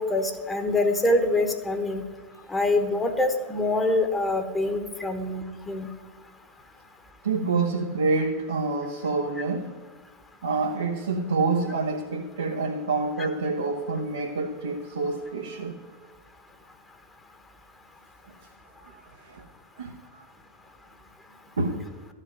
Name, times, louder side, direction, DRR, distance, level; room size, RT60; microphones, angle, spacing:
voice 1, 0.0-2.0 2.5-5.9 13.2-13.3, left 2 dB, 10° left, 6 dB, 1.1 m, -25 dB
voice 2, 7.2-9.7 10.4-15.8 18.8-19.4 19.8-20.2 21.6-21.9, right 3 dB, 70° right, 1 dB, 1.1 m, -27 dB
13.0 x 5.7 x 9.4 m, 1.4 s
figure-of-eight pair, 90°, 0 cm